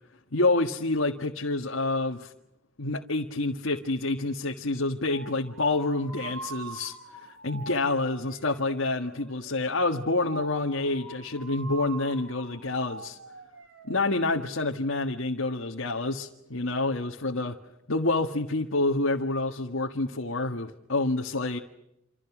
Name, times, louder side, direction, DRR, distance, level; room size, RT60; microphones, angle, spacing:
voice 1, 0.3-2.3 2.8-13.2 13.9-17.6 17.9-21.6, left 2 dB, 80° left, 1 dB, 1.6 m, -28 dB
sound 1, 5.1-14.0, right 3 dB, 80° right, 3.2 m, -44 dB
28.5 x 27.0 x 6.1 m, 0.82 s
head